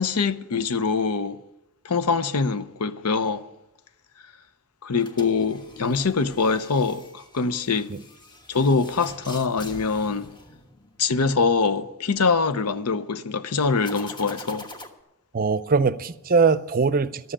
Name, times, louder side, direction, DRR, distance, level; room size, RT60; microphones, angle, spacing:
voice 1, 0.0-1.4 1.8-3.4 4.8-7.9 8.5-10.3 11.0-14.7, left 4 dB, 90° left, 0.8 m, -24 dB
sound 1, 5.0-11.1 13.8-14.9, left 1 dB, 20° left, 1.2 m, -44 dB
voice 2, 15.3-17.3, right 4 dB, 40° right, 0.5 m, -22 dB
12.5 x 7.6 x 9.8 m
head